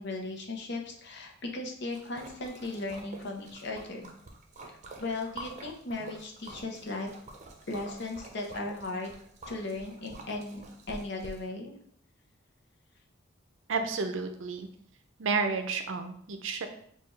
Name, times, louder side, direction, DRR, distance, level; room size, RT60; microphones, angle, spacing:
voice 1, 0.0-4.1 4.6-7.1 7.7-9.1 9.5-11.7, left 2 dB, 60° left, 1 dB, 0.9 m, -37 dB
Splash splatter, 1.9-11.4, right 2 dB, 35° right, 0.6 m, -48 dB
voice 2, 13.7-14.7 15.2-16.7, right 4 dB, 75° right, 7 dB, 0.6 m, -31 dB
6.6 x 2.5 x 3.2 m, 0.64 s
head